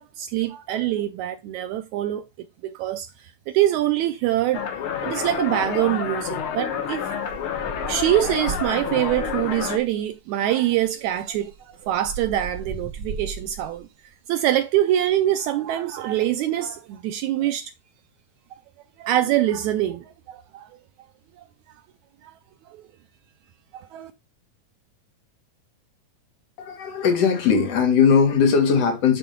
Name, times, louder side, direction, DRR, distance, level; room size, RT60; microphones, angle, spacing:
voice 1, 0.0-2.3 2.6-3.1 3.5-4.6 4.9-7.1 7.9-11.5 11.8-13.9 14.3-17.7 19.0-20.7 22.2-22.3 23.9-24.1, right 12 dB, 85° right, 1.7 m, -24 dB
sound 1, 4.5-9.8, left 8 dB, 85° left, 1.1 m, -29 dB
sound 2, 7.2-9.8 10.8-10.9 11.2-13.8, right 5 dB, 65° right, 1.4 m, -36 dB
voice 2, 26.6-29.2, left 6 dB, 55° left, 2.4 m, -19 dB
9.2 x 3.7 x 5.1 m
omnidirectional pair, 3.8 m